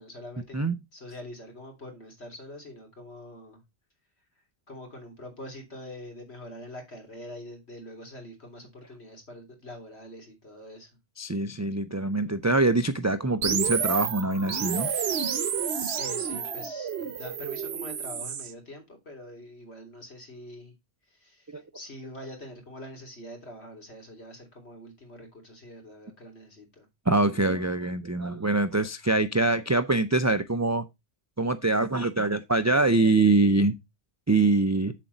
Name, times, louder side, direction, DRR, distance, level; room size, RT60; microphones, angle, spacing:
voice 1, 0.0-3.6 4.7-10.9 15.8-20.7 21.1-21.5 21.7-26.9, left 1 dB, 80° left, 3.6 m, -44 dB
voice 2, 11.2-14.9 21.5-21.6 27.1-30.8 31.4-33.7 34.3-34.9, right 2 dB, 20° right, 0.4 m, -24 dB
sound 1, 13.4-18.5, right 7 dB, 70° right, 1.2 m, -30 dB
7.6 x 7.4 x 4.0 m
omnidirectional pair, 1.1 m